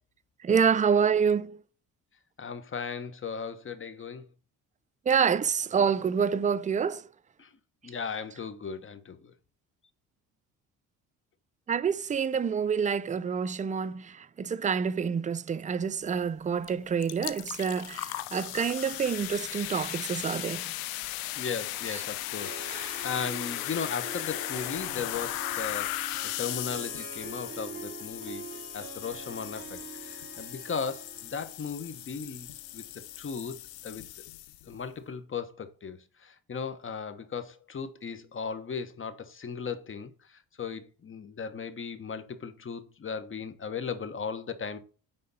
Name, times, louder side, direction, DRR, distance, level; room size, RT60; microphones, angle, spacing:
voice 1, 0.4-1.6 5.1-7.1 11.7-20.7 21.9-22.0, right 6 dB, 20° right, 0.5 m, -27 dB
voice 2, 2.4-4.3 7.4-7.5 7.8-9.3 21.4-28.5 28.7-32.5 32.7-32.8 33.2-34.0 34.7-44.8, left 6 dB, 35° left, 1.2 m, -37 dB
sound 1, 16.6-16.7 17.0-34.7, left 16 dB, 90° left, 0.7 m, -37 dB
Harp, 21.7-33.9, right 5 dB, 40° right, 2.3 m, -46 dB
9.5 x 3.7 x 4.1 m
cardioid pair, 85°, 35 cm